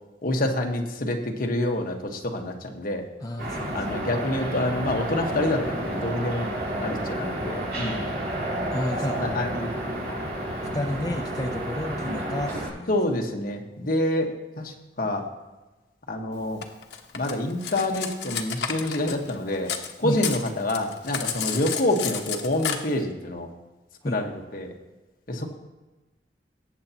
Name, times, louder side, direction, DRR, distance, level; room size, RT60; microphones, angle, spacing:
voice 1, 0.2-3.0 3.7-6.5 6.8-8.0 9.2-9.7 10.1-10.2 12.9-14.3 14.6-15.2 16.1-16.6 17.1-19.7 20.0-23.5 24.0-24.7 25.3-25.5, left 1 dB, 55° left, 2 dB, 1.4 m, -27 dB
voice 2, 3.2-3.8 8.7-9.2 10.7-12.9 20.0-20.2 24.0-24.2, left 1 dB, 20° left, 2 dB, 0.6 m, -30 dB
sound 1, 3.4-12.7, right 1 dB, 60° right, 3.2 m, -30 dB
Cutlery silverware, 16.6-19.9 20.2-22.8, left 7 dB, 75° left, 1.1 m, -31 dB
18.5 x 8.2 x 2.9 m, 1.1 s
head